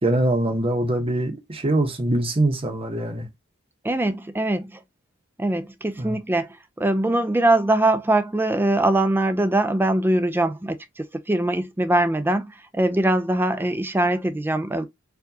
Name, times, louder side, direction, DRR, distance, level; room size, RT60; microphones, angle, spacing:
voice 1, 0.0-3.3 6.0-6.2, right 1 dB, 30° right, 0.9 m, -23 dB
voice 2, 3.8-4.8 5.4-14.9, right 1 dB, 10° right, 0.4 m, -22 dB
4.6 x 2.4 x 2.7 m
head